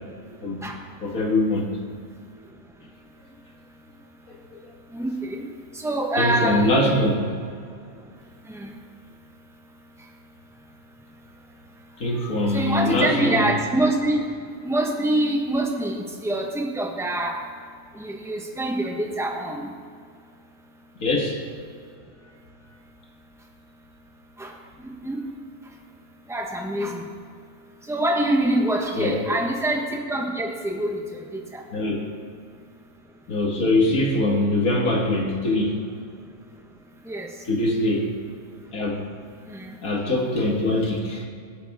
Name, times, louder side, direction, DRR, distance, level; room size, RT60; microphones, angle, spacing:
voice 1, 1.0-1.8 6.2-7.2 12.0-13.5 21.0-21.4 29.0-29.4 31.7-32.1 33.3-35.9 37.5-38.1 38.7-39.1 39.8-41.3, left 1 dB, 85° left, -1 dB, 2.4 m, -23 dB
voice 2, 4.9-5.4 5.7-6.9 8.5-8.7 12.5-14.2 14.6-17.4 17.9-19.7 24.4-24.5 24.8-25.2 26.3-27.0 27.9-31.0 31.3-31.6 37.1-37.3 39.5-39.7, right 1 dB, ahead, 0 dB, 1.3 m, -25 dB
22.5 x 8.2 x 3.7 m, 2.2 s
omnidirectional pair, 1.4 m